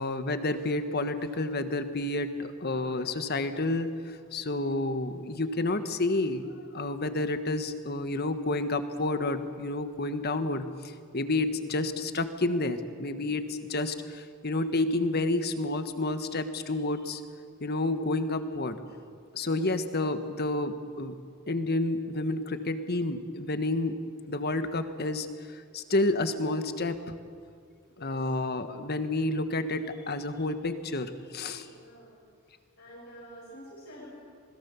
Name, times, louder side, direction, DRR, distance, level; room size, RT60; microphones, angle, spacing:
voice 1, 0.0-17.2 17.6-18.8 19.3-21.2 21.5-24.0 24.3-27.0 28.0-31.7, left 2 dB, 45° left, 9 dB, 1.4 m, -30 dB
voice 2, 19.3-19.8 27.9-28.2 31.6-32.2 32.8-34.1, equal, 70° left, -8 dB, 6.9 m, -49 dB
27.0 x 21.0 x 7.1 m, 2.2 s
head